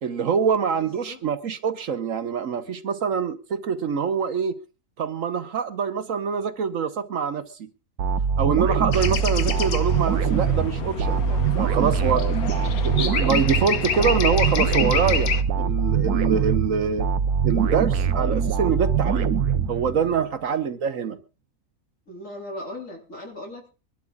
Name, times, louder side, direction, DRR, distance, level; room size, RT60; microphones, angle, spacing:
voice 1, 0.0-4.6 5.0-7.7 8.4-12.3 12.8-17.1 17.4-19.3 19.7-21.2, right 6 dB, 65° right, 1.3 m, -25 dB
voice 2, 0.7-1.2 22.1-23.7, left 1 dB, 55° left, 3.9 m, -38 dB
sound 1, 8.0-20.3, right 6 dB, 85° right, 1.3 m, -23 dB
sound 2, 8.9-15.4, left 8 dB, 75° left, 1.5 m, -28 dB
24.5 x 12.0 x 2.3 m
omnidirectional pair, 1.6 m